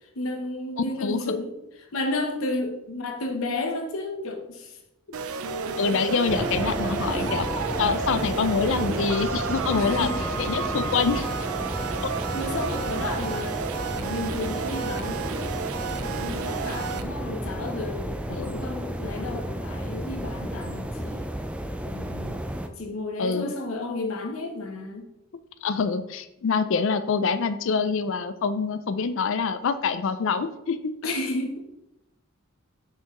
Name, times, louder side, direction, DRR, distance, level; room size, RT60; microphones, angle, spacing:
voice 1, 0.1-1.5 1.9-4.7 7.0-7.4 9.7-10.2 12.3-13.5 13.9-18.1 18.5-21.3 21.8-22.4 22.8-25.0 31.0-31.6, left 2 dB, 90° left, 4 dB, 1.0 m, -32 dB
voice 2, 0.8-1.4 5.8-7.5 7.8-10.1 10.4-11.3 18.3-18.7 23.2-23.5 25.6-30.9, left 5 dB, 65° left, 12 dB, 0.4 m, -26 dB
sound 1, 5.1-17.0, right 5 dB, 90° right, 0.5 m, -31 dB
sound 2, 6.3-22.7, equal, 5° right, 0.3 m, -32 dB
5.8 x 4.5 x 3.7 m, 0.90 s
head